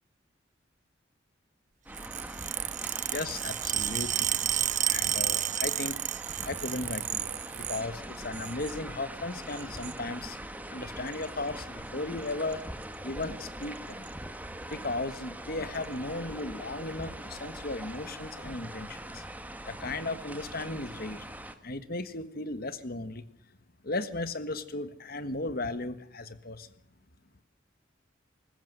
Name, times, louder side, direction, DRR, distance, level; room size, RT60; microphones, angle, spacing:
sound 1, 1.9-21.6, right 1 dB, 10° right, 1.5 m, -42 dB
sound 2, 1.9-7.8 8.2-8.8 9.5-10.0 11.1-11.3 12.3-12.5 12.8-12.9 13.2-13.3 13.6-14.1 14.7-14.8 15.7-15.8, right 11 dB, 40° right, 0.8 m, -32 dB
voice 1, 2.8-6.0 6.4-10.4 10.7-12.6 13.0-14.0 14.7-19.2 19.6-21.3 21.6-23.2 23.8-26.7, left 2 dB, 50° left, 12 dB, 1.5 m, -36 dB
21.0 x 19.0 x 8.0 m, 0.70 s
head